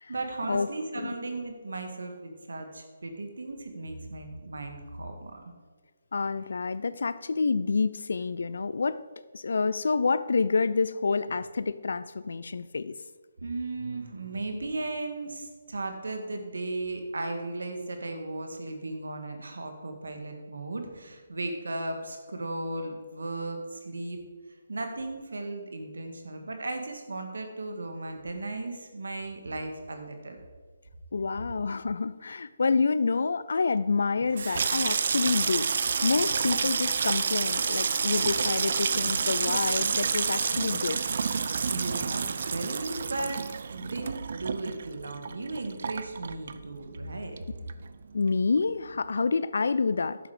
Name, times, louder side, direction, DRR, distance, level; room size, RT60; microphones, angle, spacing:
voice 1, 0.1-5.4 13.4-24.2 24.7-30.4 41.7-43.4 43.7-47.4, right 2 dB, 80° right, 5 dB, 1.8 m, -36 dB
voice 2, 6.1-9.0 9.3-13.0 31.1-35.7 36.0-41.0 48.1-50.2, left 4 dB, 70° left, 15 dB, 0.4 m, -28 dB
Water tap faucet / Sink (filling or washing), 34.2-47.1 47.4-48.0 48.3-48.6, right 5 dB, 60° right, 0.5 m, -29 dB
11.0 x 7.4 x 5.0 m, 1.4 s
figure-of-eight pair, 150°, 0 cm